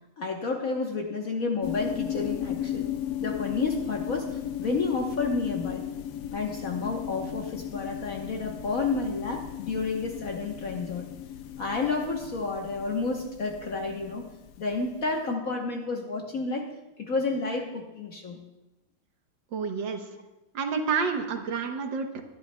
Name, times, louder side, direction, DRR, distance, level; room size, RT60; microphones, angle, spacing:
voice 1, 0.2-2.9 3.2-5.8 6.3-11.1 11.6-14.2 14.6-16.7 17.0-18.4 19.9-20.2, left 3 dB, 50° left, 2 dB, 1.2 m, -30 dB
sound 1, 1.6-15.0, left 10 dB, 75° left, 0.9 m, -36 dB
voice 2, 19.5-20.0 20.5-22.2, right 5 dB, 65° right, 5 dB, 1.6 m, -29 dB
22.0 x 11.0 x 2.2 m, 0.99 s
omnidirectional pair, 2.3 m